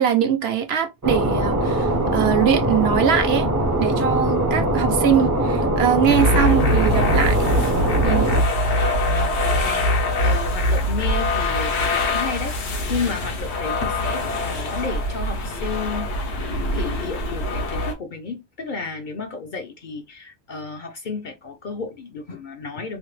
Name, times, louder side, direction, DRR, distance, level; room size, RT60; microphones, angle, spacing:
voice 1, 0.0-3.5 3.8-7.4 8.0-8.3, right 8 dB, 70° right, 0.9 m, -22 dB
sound 1, 1.0-8.4, right 1 dB, 25° right, 0.4 m, -21 dB
sound 2, 6.1-17.9, left 1 dB, 75° left, 1.1 m, -23 dB
voice 2, 9.0-23.0, left 4 dB, 55° left, 0.6 m, -32 dB
3.3 x 2.1 x 3.1 m
omnidirectional pair, 1.2 m